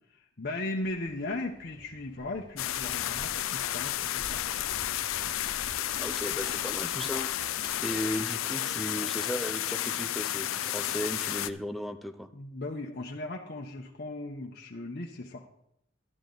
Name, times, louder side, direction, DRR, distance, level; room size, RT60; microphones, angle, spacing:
voice 1, 0.4-4.4 7.6-7.7 12.3-15.4, left 2 dB, 50° left, -1 dB, 0.9 m, -37 dB
sound 1, 0.8-7.8, left 2 dB, 25° left, 1.8 m, -48 dB
sound 2, 2.6-11.5, left 12 dB, 85° left, 0.5 m, -32 dB
sound 3, 5.9-8.9, right 1 dB, 40° right, 2.1 m, -51 dB
voice 2, 6.0-7.3 7.8-12.3, equal, ahead, 7 dB, 0.5 m, -36 dB
12.0 x 10.5 x 3.9 m, 0.76 s
head